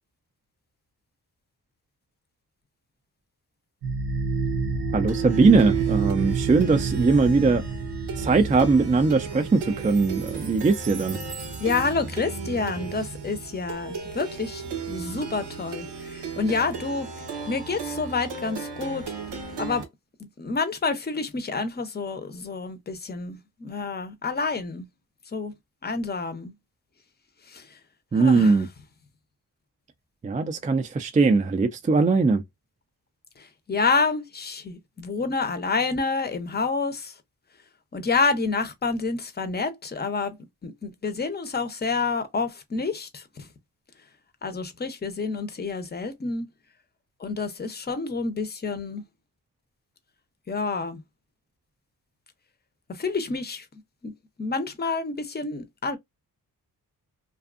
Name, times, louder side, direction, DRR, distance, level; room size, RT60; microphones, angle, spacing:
Plucked string instrument, 3.8-19.9, right 5 dB, 85° right, 0.8 m, -31 dB
voice 1, 4.9-7.6 8.2-11.2 28.1-28.7 30.2-32.4, right 4 dB, 20° right, 0.4 m, -20 dB
voice 2, 11.6-19.1 19.6-19.8 20.2-24.9 25.3-25.5 25.8-26.5 27.5-27.7 28.2-28.6 33.4-37.1 37.9-40.4 40.6-43.5 44.4-46.5 47.2-49.0 50.5-51.0 52.9-53.7 54.0-54.1 54.4-56.0, left 4 dB, 25° left, 0.6 m, -28 dB
2.5 x 2.3 x 2.4 m
cardioid pair, 70°, 40 cm